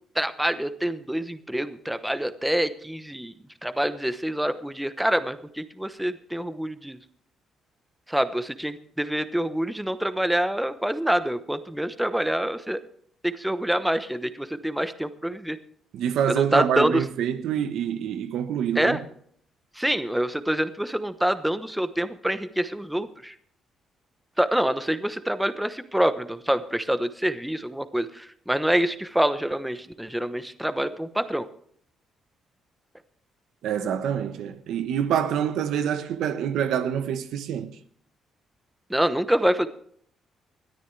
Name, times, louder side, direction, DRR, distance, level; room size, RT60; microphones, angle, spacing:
voice 1, 0.1-3.3 3.6-7.0 8.1-12.8 13.2-15.6 16.3-17.1 18.7-19.0 19.7-23.3 24.4-31.5 38.9-39.7, right 1 dB, 5° right, 1.0 m, -26 dB
voice 2, 15.9-19.0 33.6-37.8, right 9 dB, 80° right, 1.1 m, -26 dB
21.0 x 13.0 x 3.4 m
cardioid pair, 90°, 0 cm